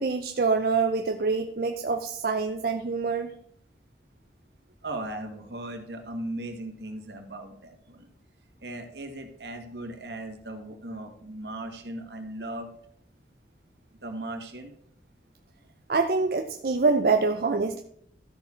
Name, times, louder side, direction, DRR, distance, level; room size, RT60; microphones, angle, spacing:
voice 1, 0.0-3.3 15.9-17.8, right 4 dB, 55° right, 6 dB, 0.5 m, -25 dB
voice 2, 4.8-8.1 8.6-12.7 14.0-14.7, right 1 dB, 75° right, 4 dB, 1.8 m, -37 dB
13.0 x 6.5 x 4.4 m, 0.68 s
head